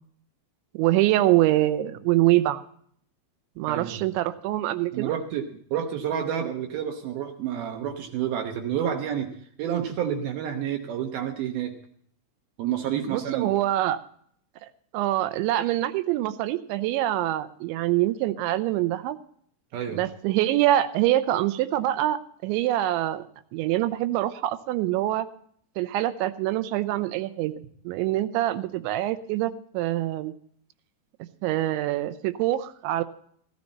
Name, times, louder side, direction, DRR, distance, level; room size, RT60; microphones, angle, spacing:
voice 1, 0.7-2.6 3.6-5.2 13.1-14.0 14.6-14.7 14.9-19.2 19.9-23.3 23.5-25.3 25.8-30.3 31.4-33.0, right 14 dB, 90° right, 11 dB, 3.1 m, -25 dB
voice 2, 3.7-4.0 4.9-9.3 9.6-11.8 12.6-13.5 19.7-20.0, right 9 dB, 70° right, 4 dB, 2.5 m, -29 dB
16.5 x 12.5 x 4.2 m, 0.62 s
omnidirectional pair, 5.2 m